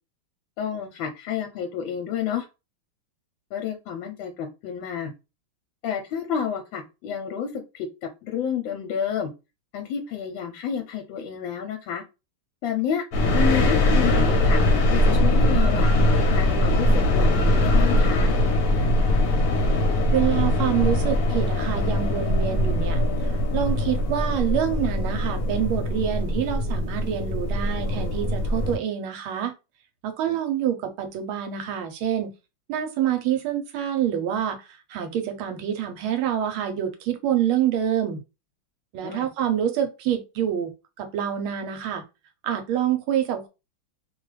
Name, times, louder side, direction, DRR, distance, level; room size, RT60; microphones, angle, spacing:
voice 1, 0.6-2.5 3.5-5.1 5.8-9.3 9.7-12.0 12.6-13.0 13.3-14.6 14.9-15.9 16.3-18.4 30.3-30.4 39.0-39.3, left 8 dB, 75° left, 1.3 m, -30 dB
sound 1, 13.1-28.8, left 1 dB, 60° left, 1.1 m, -21 dB
voice 2, 20.1-29.5 30.0-32.3 32.7-34.6 34.9-38.2 38.9-40.7 41.0-42.0 42.4-43.5, right 10 dB, 85° right, 1.5 m, -26 dB
3.2 x 2.3 x 3.1 m
omnidirectional pair, 2.3 m